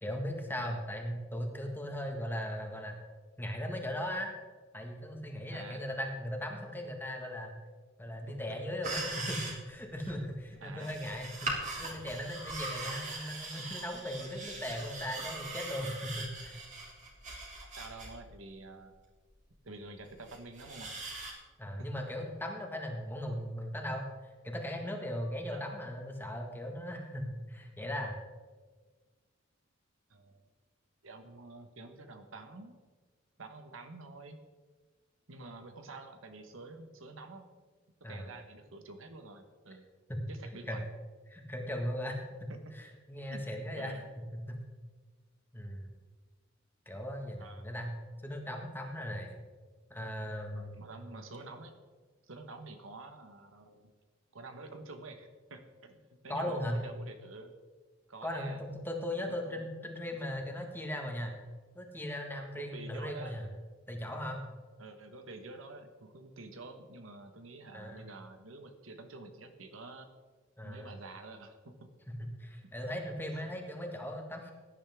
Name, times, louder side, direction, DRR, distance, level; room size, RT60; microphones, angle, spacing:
voice 1, 0.0-3.0 3.4-4.3 4.7-7.5 8.0-16.6 21.6-24.1 24.4-28.1 38.0-38.3 40.1-40.2 40.7-40.8 41.3-42.5 42.8-43.9 44.5-44.6 45.5-45.9 46.8-47.9 48.2-49.3 49.9-50.8 56.3-56.8 58.2-61.3 61.7-63.5 63.9-64.5 67.7-68.0 70.6-70.9 72.1-74.5, equal, 10° left, 2 dB, 1.7 m, -38 dB
voice 2, 5.5-5.8 8.2-8.4 10.6-11.0 12.8-13.1 17.7-18.9 19.6-21.0 21.8-21.9 25.5-25.6 30.1-30.4 31.0-32.7 33.4-34.4 35.3-37.5 38.1-39.8 40.3-40.9 42.5-42.7 43.3-44.1 47.4-47.7 50.5-51.7 52.2-53.9 54.3-57.5 58.1-58.6 59.2-59.7 62.6-63.4 64.8-70.1 70.6-71.9 73.3-73.6, right 2 dB, 85° right, 7 dB, 1.3 m, -48 dB
sound 1, 8.8-9.7 10.0-10.1 10.8-18.1 18.5-18.6 19.9-21.3, right 3 dB, 40° right, 2.9 m, -41 dB
16.5 x 10.5 x 3.7 m, 1.4 s
head